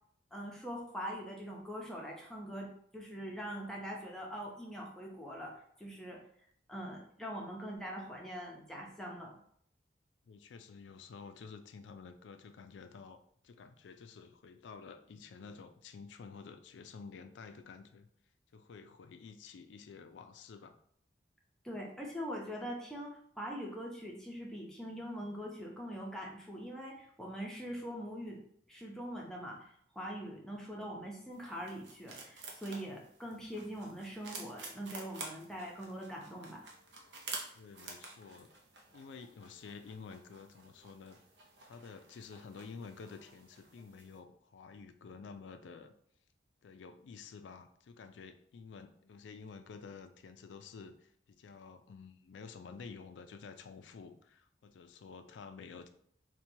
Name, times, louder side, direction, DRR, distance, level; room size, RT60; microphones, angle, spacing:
voice 1, 0.3-5.5 5.8-6.2 6.7-9.3 21.6-28.4 28.7-36.7, equal, 5° left, -2 dB, 0.5 m, -43 dB
voice 2, 10.3-13.2 13.4-18.1 18.5-20.8 37.5-38.5 38.9-41.2 41.7-45.9 46.6-55.9, left 5 dB, 90° left, 9 dB, 0.4 m, -50 dB
sound 1, 31.3-44.2, right 3 dB, 80° right, 0.7 m, -50 dB
4.3 x 2.2 x 2.7 m, 0.64 s
head